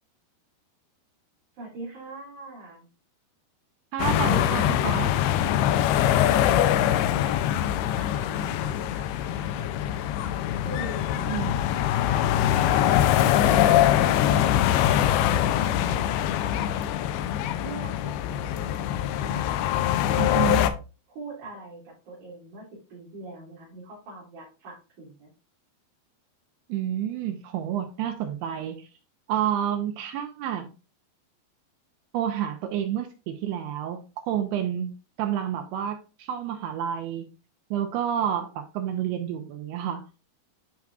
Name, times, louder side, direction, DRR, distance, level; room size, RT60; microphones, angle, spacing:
voice 1, 1.5-2.9 5.6-11.3 11.9-13.1 13.5-16.7 17.6-20.3 21.1-25.3, right 2 dB, 50° right, 3.2 m, -43 dB
voice 2, 3.9-5.1 11.3-11.6 20.2-20.6 26.7-28.9 29.3-30.7 32.1-34.9 35.2-37.3 37.7-40.0, right 10 dB, 80° right, 2.3 m, -29 dB
sound 1, 4.0-20.7, left 11 dB, 85° left, 2.2 m, -23 dB
9.4 x 4.7 x 2.3 m
omnidirectional pair, 4.9 m